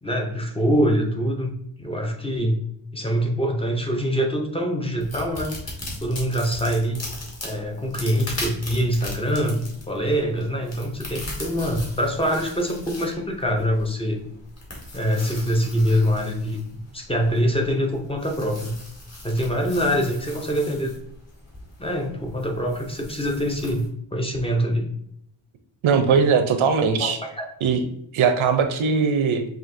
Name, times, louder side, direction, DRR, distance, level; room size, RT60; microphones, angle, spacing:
voice 1, 0.0-2.6 2.9-5.5 6.0-7.0 7.4-14.2 14.9-16.6 16.9-18.7 19.2-20.9 21.8-24.9 27.0-27.5, equal, 10° left, 1 dB, 0.5 m, -24 dB
sound 1, 5.0-23.9, left 1 dB, 30° left, 1.1 m, -39 dB
voice 2, 25.8-27.2 27.6-27.8 28.1-29.5, right 6 dB, 75° right, 7 dB, 0.6 m, -20 dB
5.8 x 2.7 x 2.6 m, 0.72 s
wide cardioid pair, 175°, 48 cm